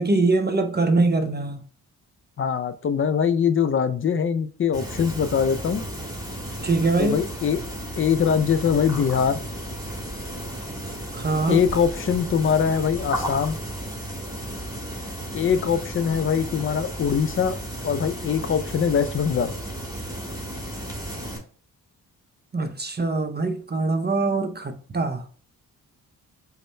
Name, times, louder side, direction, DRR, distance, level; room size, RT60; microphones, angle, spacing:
voice 1, 0.0-1.6 6.6-7.2 11.1-11.6 22.5-25.2, right 3 dB, 25° right, 0.6 m, -23 dB
voice 2, 2.4-5.8 7.0-7.6 8.0-9.4 11.5-13.6 15.3-17.6 17.8-19.5, left 7 dB, 35° left, 0.4 m, -22 dB
sound 1, 4.7-21.4, equal, 10° right, 1.4 m, -34 dB
5.1 x 2.2 x 3.2 m
supercardioid pair, 45°, 39 cm